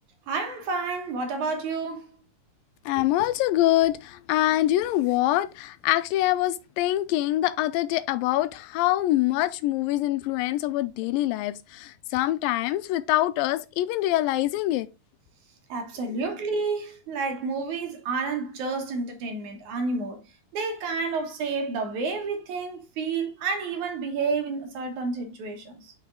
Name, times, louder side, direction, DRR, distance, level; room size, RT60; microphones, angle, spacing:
voice 1, 0.3-2.1 15.7-20.2 20.5-25.9, right 4 dB, 65° right, 2.5 m, -30 dB
voice 2, 2.9-14.9, left 15 dB, 85° left, 2.3 m, -24 dB
6.2 x 5.9 x 3.7 m
omnidirectional pair, 4.0 m